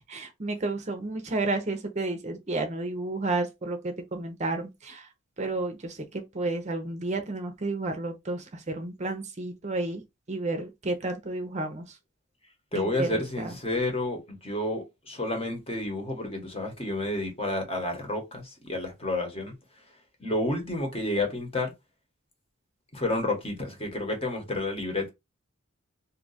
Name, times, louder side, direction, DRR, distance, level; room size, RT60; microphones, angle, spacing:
voice 1, 0.1-5.1 5.4-10.0 10.3-12.0 12.7-13.5, right 2 dB, 35° right, 0.6 m, -31 dB
voice 2, 12.7-19.5 20.2-21.7 22.9-25.1, left 2 dB, 30° left, 1.1 m, -30 dB
2.6 x 2.4 x 4.0 m
head